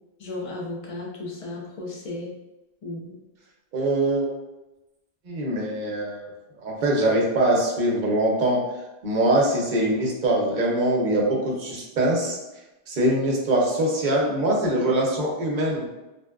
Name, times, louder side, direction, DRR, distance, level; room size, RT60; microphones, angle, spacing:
voice 1, 0.2-2.3 2.8-3.2, left 2 dB, 40° left, -2 dB, 0.5 m, -34 dB
voice 2, 3.7-4.3 5.3-6.3 6.6-8.6 9.0-12.4 12.9-15.8, right 1 dB, 55° right, -2 dB, 0.7 m, -23 dB
2.7 x 2.2 x 2.2 m, 1.0 s
omnidirectional pair, 1.1 m